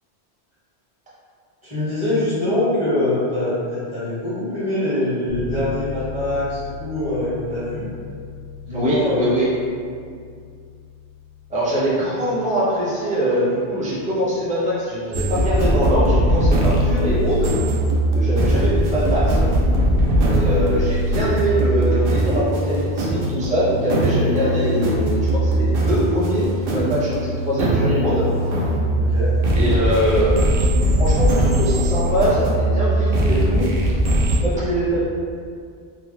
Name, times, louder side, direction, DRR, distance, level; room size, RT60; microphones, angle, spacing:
voice 1, 1.6-7.9 8.7-9.2 20.1-20.6 28.9-29.4, left 1 dB, 25° right, -11 dB, 1.1 m, -24 dB
Bass guitar, 5.3-15.1, left 5 dB, 90° left, 0.9 m, -38 dB
voice 2, 8.7-9.5 11.5-17.5 18.1-19.5 20.3-27.1 27.4-28.3 29.5-30.3 31.0-33.7 34.4-35.0, equal, 10° right, -9 dB, 0.5 m, -22 dB
sound 1, 15.1-34.4, right 1 dB, 65° right, 0.7 m, -20 dB
2.8 x 2.0 x 3.2 m, 2.2 s
omnidirectional pair, 1.1 m